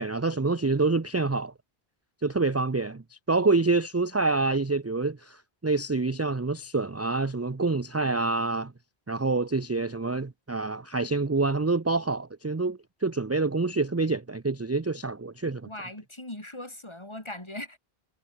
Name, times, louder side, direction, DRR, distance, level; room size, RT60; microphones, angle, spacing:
voice 1, 0.0-1.5 2.2-8.7 9.1-15.7, right 3 dB, 20° right, 0.5 m, -27 dB
voice 2, 15.7-17.8, left 1 dB, 25° left, 3.6 m, -39 dB
omnidirectional pair, 1.1 m